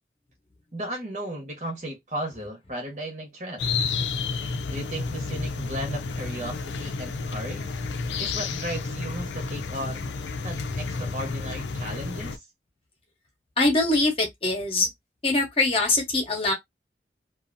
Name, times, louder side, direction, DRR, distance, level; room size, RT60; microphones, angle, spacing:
voice 1, 0.7-3.6 4.7-7.8 8.2-10.1 10.4-12.5, right 1 dB, 45° right, 1.1 m, -35 dB
sound 1, 3.6-12.4, left 4 dB, 90° left, 0.4 m, -31 dB
voice 2, 13.6-14.9 15.2-16.5, left 2 dB, 35° left, 0.8 m, -23 dB
2.6 x 2.4 x 2.5 m
head